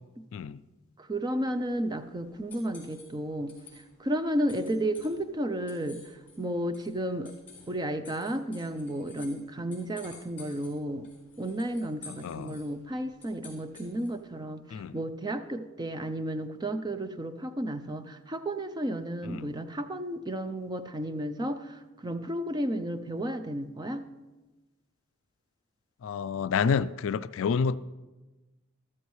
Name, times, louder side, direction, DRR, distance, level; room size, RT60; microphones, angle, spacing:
voice 1, 1.0-7.3 7.7-11.1 11.4-24.1, right 1 dB, 20° right, 0.5 m, -33 dB
sound 1, 1.4-14.3, left 4 dB, 10° left, 3.7 m, -54 dB
voice 2, 12.2-12.6 14.7-14.9 19.3-19.5 26.0-27.8, left 6 dB, 60° left, 0.3 m, -29 dB
13.5 x 13.0 x 3.2 m
head